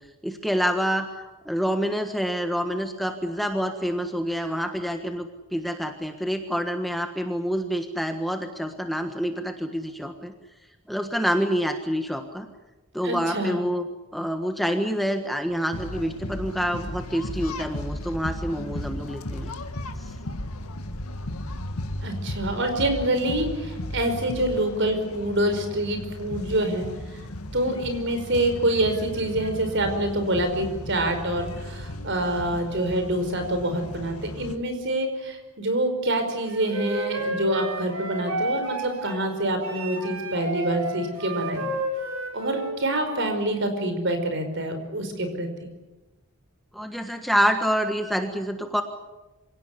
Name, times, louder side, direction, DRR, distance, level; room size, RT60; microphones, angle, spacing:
voice 1, 0.2-10.3 10.9-12.5 12.9-13.8 14.1-19.5 46.7-48.8, equal, ahead, 5 dB, 1.4 m, -27 dB
voice 2, 13.0-13.6 22.0-27.2 27.5-41.6 42.3-45.7, right 1 dB, 55° right, 7 dB, 5.2 m, -26 dB
sound 1, 15.7-34.6, left 1 dB, 80° left, 1.9 m, -35 dB
Wind instrument woodwind instrument, 36.4-39.2 39.6-42.7, right 1 dB, 75° right, 5.9 m, -31 dB
26.5 x 17.5 x 10.0 m, 1.1 s
head